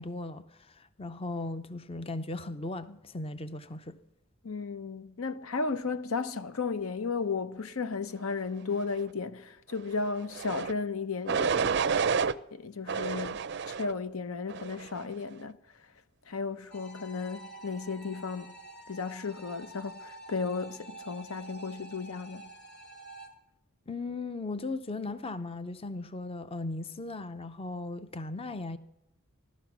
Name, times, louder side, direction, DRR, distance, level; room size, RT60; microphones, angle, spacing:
voice 1, 0.0-4.0 23.9-28.8, left 2 dB, 25° left, 0.6 m, -37 dB
voice 2, 4.4-11.8 12.5-15.6 16.3-18.5 18.9-22.5, left 4 dB, 80° left, 0.8 m, -34 dB
sound 1, 10.3-10.7 11.3-12.3 12.9-13.9 14.5-14.9, right 5 dB, 50° right, 0.5 m, -29 dB
sound 2, 16.7-23.3, right 2 dB, 50° left, 2.7 m, -48 dB
16.5 x 12.5 x 6.0 m
head